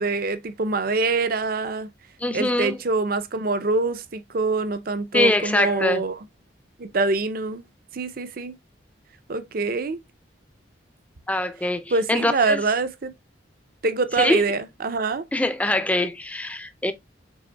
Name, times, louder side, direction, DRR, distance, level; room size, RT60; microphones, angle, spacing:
voice 1, 0.0-1.9 2.3-6.1 6.8-7.6 7.9-8.5 9.3-10.0 11.9-13.1 13.8-15.2, right 3 dB, 50° right, 0.5 m, -25 dB
voice 2, 2.2-2.8 5.1-6.0 11.3-12.6 14.2-14.4 15.3-16.9, left 1 dB, 5° left, 0.4 m, -23 dB
6.2 x 3.8 x 2.2 m
head